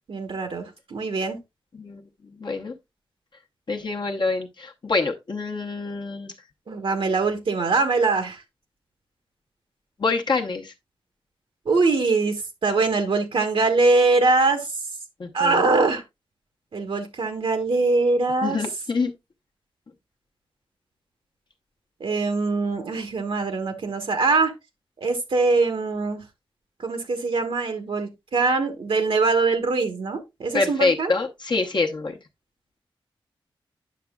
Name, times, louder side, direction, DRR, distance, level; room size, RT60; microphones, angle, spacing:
voice 1, 0.1-1.4 6.7-8.4 11.7-14.7 15.3-16.0 16.7-18.6 22.0-24.5 25.0-26.2 26.8-31.1, right 3 dB, 70° right, 1.1 m, -22 dB
voice 2, 1.7-2.7 3.7-6.3 10.0-10.7 15.2-15.7 18.4-19.1 30.5-32.2, left 3 dB, 55° left, 0.8 m, -26 dB
9.2 x 6.0 x 2.2 m
wide cardioid pair, 90°, 9 cm